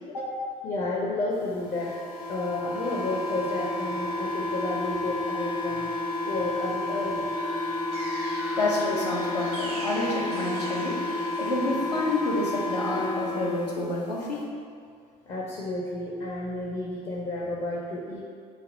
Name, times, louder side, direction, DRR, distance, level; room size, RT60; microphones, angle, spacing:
voice 1, 0.1-0.4 8.6-11.0 11.4-14.5, left 2 dB, 80° left, -2 dB, 0.5 m, -29 dB
voice 2, 0.6-1.9 2.3-5.9 6.2-7.5 15.3-18.2, left 2 dB, 35° left, -5 dB, 0.5 m, -31 dB
sound 1, 1.7-13.7, left 2 dB, 60° left, 0.9 m, -31 dB
sound 2, 7.0-12.2, right 1 dB, 70° right, 0.6 m, -41 dB
3.3 x 2.3 x 3.8 m, 2.2 s
figure-of-eight pair, 55°, 20 cm